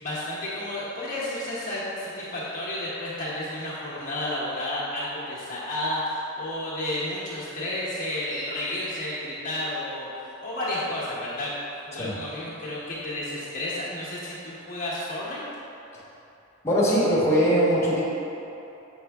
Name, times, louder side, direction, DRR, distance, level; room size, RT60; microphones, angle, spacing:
voice 1, 0.0-11.5 11.9-15.4, left 1 dB, 40° left, -8 dB, 1.1 m, -31 dB
voice 2, 16.6-18.0, equal, 10° left, -8 dB, 1.2 m, -21 dB
6.5 x 4.8 x 3.5 m, 2.9 s
head